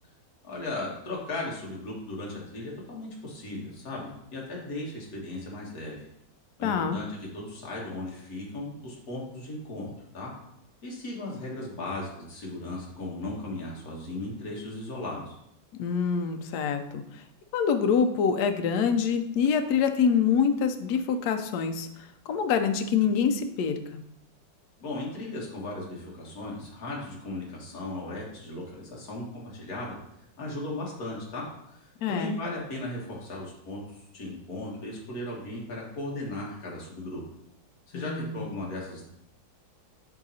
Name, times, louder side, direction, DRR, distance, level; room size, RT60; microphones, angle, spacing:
voice 1, 0.4-6.1 6.6-10.3 10.8-15.4 24.8-30.0 30.4-37.2 37.9-39.1, left 2 dB, 50° left, -3 dB, 2.0 m, -37 dB
voice 2, 6.6-7.0 15.7-17.0 17.5-21.9 22.3-24.0 32.0-32.4 37.9-38.4, left 6 dB, 70° left, 7 dB, 1.0 m, -25 dB
7.4 x 3.7 x 4.1 m, 0.78 s
omnidirectional pair, 2.1 m